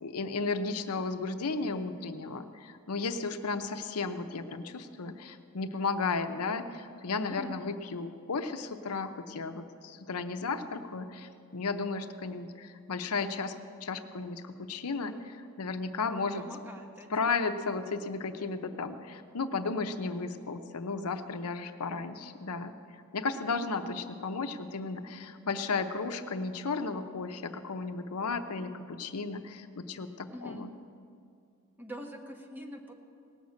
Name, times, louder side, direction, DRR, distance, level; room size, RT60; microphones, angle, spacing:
voice 1, 0.0-13.6 13.8-16.4 17.1-22.7 23.1-30.7, left 4 dB, 90° left, 8 dB, 0.7 m, -34 dB
voice 2, 16.4-17.4 30.3-30.6 31.8-32.9, equal, 10° right, 2 dB, 1.2 m, -44 dB
18.0 x 6.5 x 8.2 m, 2.4 s
head